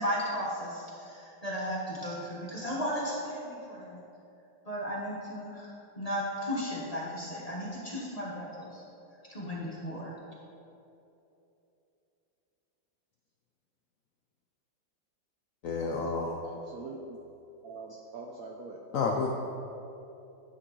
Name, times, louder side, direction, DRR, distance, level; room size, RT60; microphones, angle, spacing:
voice 1, 0.0-4.0 4.7-5.7 6.0-8.8 9.3-10.1, equal, 25° left, -5 dB, 0.9 m, -35 dB
voice 2, 15.6-16.4 18.9-19.3, left 4 dB, 85° left, 0 dB, 0.7 m, -30 dB
voice 3, 16.4-17.2 17.6-19.1, right 3 dB, 70° right, 0 dB, 0.8 m, -44 dB
10.5 x 6.0 x 3.2 m, 2.9 s
omnidirectional pair, 2.1 m